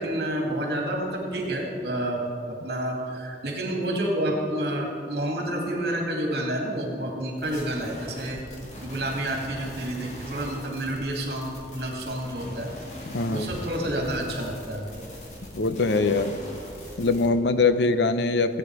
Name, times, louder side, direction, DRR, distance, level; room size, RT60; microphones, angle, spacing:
voice 1, 0.0-2.2 2.5-8.4 8.8-12.7 13.3-15.1, right 1 dB, 60° right, 0 dB, 2.7 m, -29 dB
sound 1, 7.4-17.3, left 1 dB, 40° left, 2.3 m, -41 dB
voice 2, 13.1-13.5 15.5-16.4 17.0-18.6, left 3 dB, 75° left, 11 dB, 0.7 m, -23 dB
18.0 x 9.3 x 4.9 m, 2.5 s
head